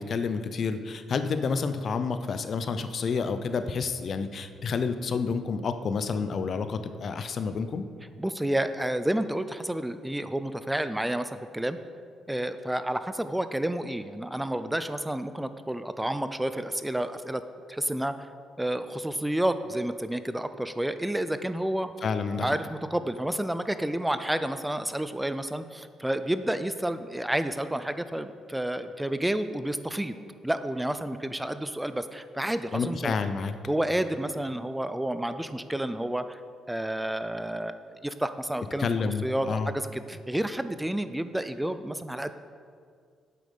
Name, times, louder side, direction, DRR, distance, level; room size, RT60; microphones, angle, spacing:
voice 1, 0.0-7.8 22.0-22.6 32.7-33.5 38.8-39.7, left 5 dB, 50° left, 10 dB, 0.6 m, -29 dB
voice 2, 8.2-11.8 12.3-17.4 17.7-18.2 18.6-21.9 22.4-30.1 30.4-33.1 33.7-36.4 36.7-37.8 38.0-42.3, right 1 dB, 5° right, 11 dB, 0.4 m, -30 dB
8.4 x 7.8 x 5.3 m, 2.1 s
cardioid pair, 90°, 0 cm